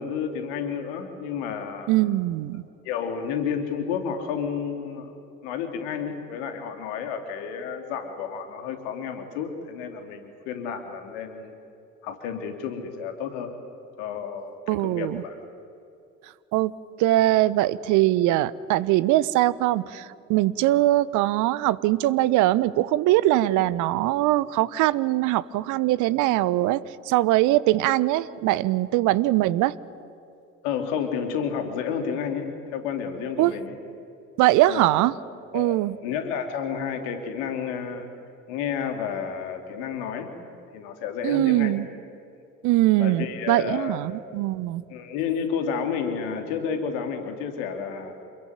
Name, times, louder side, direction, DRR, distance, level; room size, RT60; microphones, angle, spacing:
voice 1, 0.0-1.9 2.8-5.1 5.4-11.6 12.0-13.5 14.0-15.3 30.6-33.7 34.7-34.9 35.5-38.1 38.5-40.3 40.7-41.7 43.0-44.0 44.9-48.2, left 7 dB, 60° left, 6 dB, 3.2 m, -31 dB
voice 2, 1.9-2.6 14.7-15.2 16.2-16.7 17.0-29.7 33.4-33.5 34.4-35.1 35.5-36.0 41.2-41.9 42.6-44.8, right 16 dB, 50° right, 18 dB, 1.0 m, -22 dB
28.0 x 21.5 x 9.4 m, 2.6 s
figure-of-eight pair, 60°, 39 cm